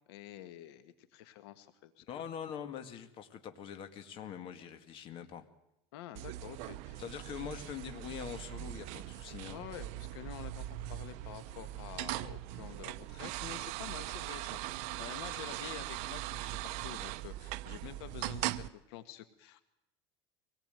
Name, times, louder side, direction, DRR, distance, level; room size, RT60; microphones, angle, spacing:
voice 1, 0.1-2.2 5.9-7.0 9.4-19.6, left 12 dB, 85° left, 11 dB, 1.7 m, -49 dB
voice 2, 2.1-5.5 7.0-9.6, left 8 dB, 40° left, 8 dB, 2.1 m, -43 dB
sound 1, 6.1-18.7, right 16 dB, 60° right, 0.8 m, -40 dB
24.0 x 18.5 x 9.2 m, 0.83 s
cardioid pair, 150°, 13 cm